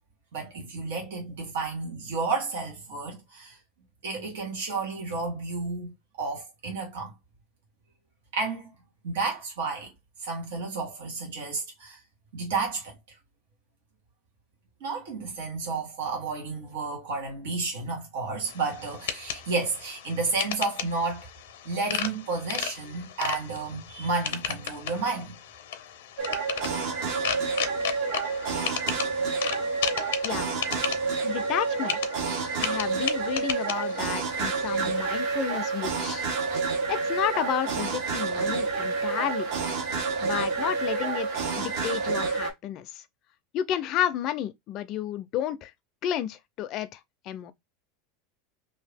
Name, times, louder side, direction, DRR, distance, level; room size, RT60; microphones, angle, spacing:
voice 1, 0.3-3.6 4.0-7.1 8.3-8.7 9.0-9.9 10.2-12.0 12.3-12.9 14.8-21.3 21.6-25.3, right 4 dB, 80° right, 1.5 m, -31 dB
sound 1, 18.4-35.2, left 9 dB, 90° left, 0.6 m, -35 dB
sound 2, 26.2-42.5, right 4 dB, 55° right, 1.0 m, -29 dB
voice 2, 31.2-32.0 32.6-36.3 36.9-39.5 40.2-43.0 43.5-45.7 46.0-47.0 47.3-47.5, left 11 dB, 40° left, 0.4 m, -31 dB
2.8 x 2.7 x 3.3 m
supercardioid pair, 150°, 0 cm